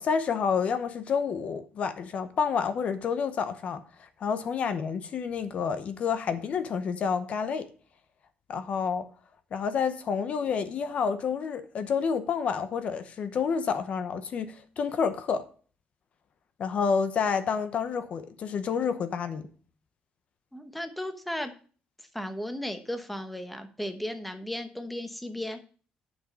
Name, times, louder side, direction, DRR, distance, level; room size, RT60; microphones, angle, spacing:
voice 1, 0.0-7.7 8.5-9.1 9.5-15.4 16.6-19.5, left 6 dB, 45° left, 0.9 m, -29 dB
voice 2, 20.5-21.5 22.0-25.6, left 1 dB, 5° left, 1.0 m, -35 dB
10.5 x 6.2 x 5.3 m
cardioid pair, 170°, 3 cm